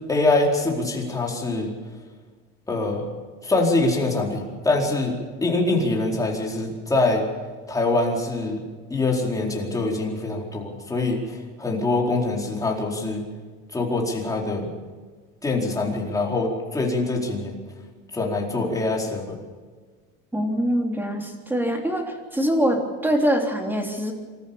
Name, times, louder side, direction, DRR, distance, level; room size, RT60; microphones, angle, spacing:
voice 1, 0.1-1.7 2.7-3.1 3.4-7.3 7.7-8.6 8.9-13.3 13.7-14.7 15.4-17.6 18.1-19.4, left 2 dB, 10° left, -1 dB, 4.4 m, -24 dB
voice 2, 20.3-24.1, equal, 5° right, 2 dB, 3.4 m, -24 dB
26.5 x 14.5 x 7.1 m, 1.4 s
cardioid pair, 135°, 29 cm